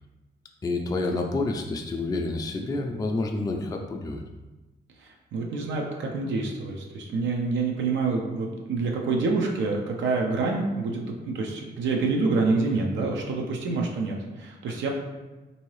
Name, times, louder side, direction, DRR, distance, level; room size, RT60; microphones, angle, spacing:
voice 1, 0.6-4.2 13.0-13.1, left 2 dB, 20° left, 2 dB, 0.3 m, -29 dB
voice 2, 5.0-14.9, right 3 dB, 90° right, 0 dB, 0.5 m, -27 dB
3.7 x 2.7 x 3.1 m, 1.2 s
cardioid pair, 90°, 19 cm